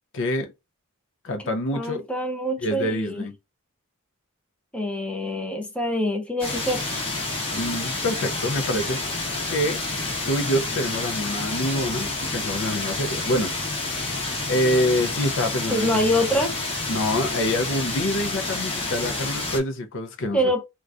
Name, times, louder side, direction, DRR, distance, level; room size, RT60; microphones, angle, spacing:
voice 1, 0.1-0.5 1.2-2.1 2.6-3.3 7.5-9.0 9.5-9.8 10.3-13.5 14.5-16.0 16.9-20.5, left 1 dB, 55° left, 0.5 m, -26 dB
voice 2, 1.4-3.3 4.7-7.0 15.7-16.5 20.3-20.6, equal, 5° left, 0.5 m, -25 dB
sound 1, 6.4-19.6, left 2 dB, 25° left, 0.9 m, -29 dB
3.6 x 2.3 x 2.4 m
head